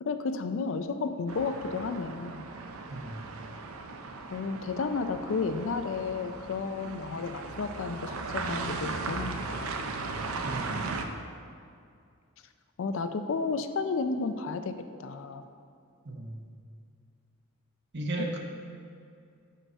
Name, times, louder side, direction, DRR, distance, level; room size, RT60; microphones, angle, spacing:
voice 1, 0.0-2.4 4.3-9.9 12.8-15.4 18.2-18.3, left 4 dB, 60° left, 9 dB, 0.4 m, -32 dB
sound 1, 1.3-11.1, right 3 dB, 80° right, 0.6 m, -37 dB
voice 2, 2.9-3.2 10.4-10.8 16.0-16.4 17.9-18.4, right 1 dB, 55° right, 2 dB, 0.9 m, -35 dB
5.6 x 5.5 x 6.1 m, 2.3 s
head